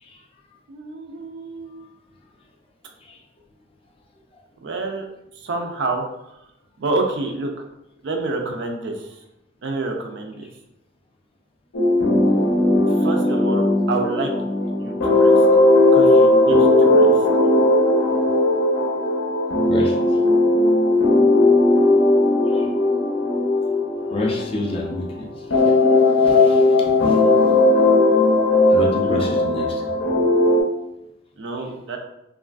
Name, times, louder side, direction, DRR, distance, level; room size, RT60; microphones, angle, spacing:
voice 1, 0.7-1.9 4.6-5.0 5.3-6.4 6.8-7.5 8.0-9.2 9.6-10.5 12.9-14.3 14.8-15.4 15.9-17.2 29.0-29.4 31.4-32.0, right 3 dB, 60° right, 3 dB, 0.4 m, -28 dB
sound 1, 11.7-25.0 25.5-30.6, left 2 dB, 85° left, 0.6 m, -17 dB
voice 2, 19.6-20.0 22.5-22.7 24.1-27.2 28.7-29.8, left 1 dB, 30° left, 1 dB, 0.4 m, -29 dB
3.0 x 2.4 x 2.3 m, 0.85 s
head